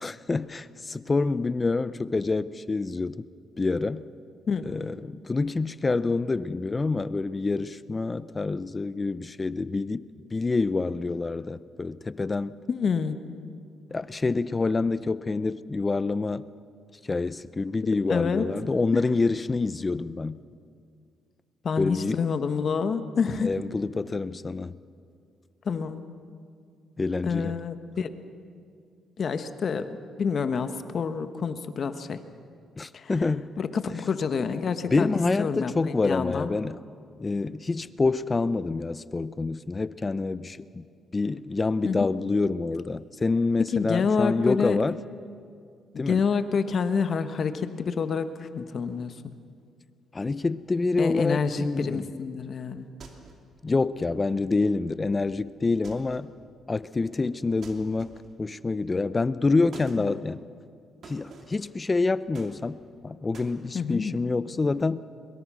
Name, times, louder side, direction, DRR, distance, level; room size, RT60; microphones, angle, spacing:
voice 1, 0.0-3.3 3.6-4.0 4.6-10.0 10.3-12.6 13.9-16.5 17.0-20.4 21.8-22.2 23.4-24.8 27.0-27.6 32.8-33.6 34.9-36.8 37.2-40.8 41.1-45.0 46.0-46.2 50.1-52.1 53.6-56.3 56.7-58.1 58.4-60.4 61.0-65.0, left 3 dB, 25° left, 17 dB, 0.6 m, -27 dB
voice 2, 12.7-13.2 18.1-18.5 18.9-19.0 21.6-23.5 25.6-26.1 27.2-28.1 29.2-32.2 32.9-33.1 33.6-35.1 35.4-35.7 36.0-36.5 41.8-42.0 43.7-44.8 45.9-49.3 51.0-52.9 60.0-60.1 63.7-64.2, left 5 dB, 50° left, 10 dB, 1.3 m, -28 dB
sound 1, 53.0-53.5 55.8-56.3 57.6-58.4 59.7-60.0 61.0-61.6 62.3-63.0 63.3-63.6, right 4 dB, 55° right, 2.7 m, -47 dB
22.0 x 22.0 x 6.2 m, 2.3 s
cardioid pair, 90°, 0 cm